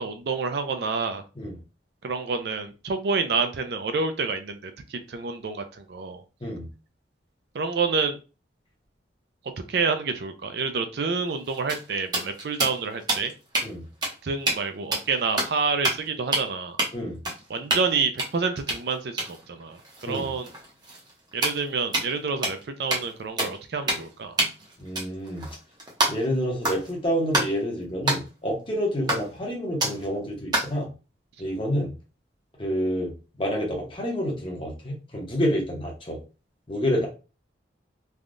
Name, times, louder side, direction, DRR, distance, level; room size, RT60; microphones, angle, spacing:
voice 1, 0.0-1.2 2.0-6.2 7.5-8.2 9.7-13.3 14.2-16.8 17.5-20.5 21.3-24.4, right 4 dB, 60° right, 8 dB, 0.4 m, -28 dB
sound 1, 11.3-13.7 14.0-14.1 14.4-14.6 14.9-15.5 15.8-16.1 16.3-16.5 16.8-16.9 17.2-17.9 18.2-22.2 22.4-22.6 22.9-23.1 23.4-23.6 23.9-24.1 24.4-26.3 26.6-26.9 27.3-27.5 28.1-28.2 29.1-29.4 29.8-30.0 30.5-30.8, right 1 dB, 20° right, 0.8 m, -28 dB
voice 2, 24.8-25.5 26.1-30.9 31.4-31.9 32.6-33.1 33.4-36.2 36.7-37.1, equal, 25° left, 0 dB, 0.9 m, -28 dB
3.4 x 2.3 x 2.5 m, 0.32 s
head